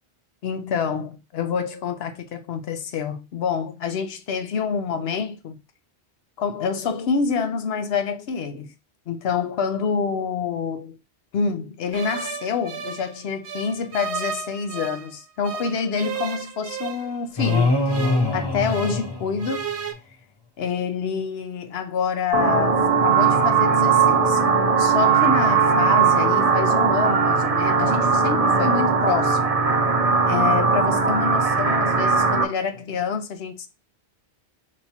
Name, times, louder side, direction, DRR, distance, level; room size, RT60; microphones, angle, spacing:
voice 1, 0.4-5.6 6.4-8.7 9.1-11.0 11.3-17.8 18.3-19.7 20.6-24.4 24.8-29.6 30.2-33.7, left 6 dB, 70° left, 0.9 m, -27 dB
sound 1, 11.9-15.1 15.4-19.1 19.4-19.9, right 6 dB, 80° right, 0.9 m, -34 dB
sound 2, 17.4-19.9, left 3 dB, 25° left, 0.7 m, -23 dB
sound 3, 22.3-32.4, right 5 dB, 40° right, 0.7 m, -19 dB
5.7 x 2.9 x 2.8 m
omnidirectional pair, 1.1 m